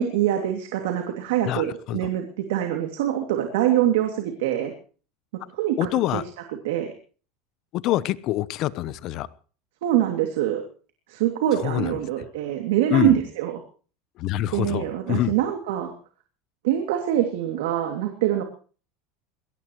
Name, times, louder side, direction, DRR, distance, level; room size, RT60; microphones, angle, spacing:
voice 1, 0.0-4.7 5.5-6.2 6.6-6.9 9.8-10.6 11.1-13.6 14.5-15.9 16.6-18.4, right 11 dB, 85° right, 5 dB, 2.6 m, -24 dB
voice 2, 1.4-2.0 5.8-6.2 7.7-9.3 11.6-12.0 12.9-13.1 14.2-15.3, left 14 dB, 50° left, 17 dB, 0.8 m, -25 dB
22.0 x 18.0 x 3.1 m, 0.39 s
supercardioid pair, 145°, 0 cm